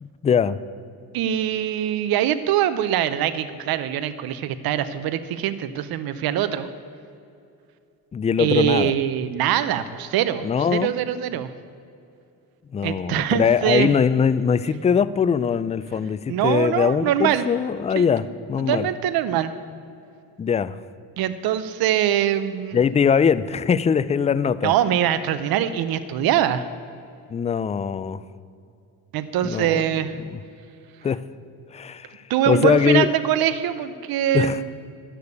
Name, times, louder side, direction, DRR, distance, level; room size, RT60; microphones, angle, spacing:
voice 1, 0.0-0.6 8.1-8.9 10.4-10.9 12.7-18.9 20.4-20.8 22.7-24.7 27.3-28.2 29.4-30.0 30.2-30.4 31.0-31.2 31.7-33.1 34.3-34.6, left 7 dB, 20° left, 16 dB, 0.3 m, -21 dB
voice 2, 1.1-6.7 8.4-11.5 12.8-13.9 16.3-17.4 18.0-18.1 18.6-19.5 21.2-22.8 24.6-26.7 29.1-30.2 32.3-34.7, right 11 dB, 65° right, 12 dB, 0.7 m, -23 dB
11.5 x 6.8 x 8.2 m, 2.5 s
cardioid pair, 90°, 39 cm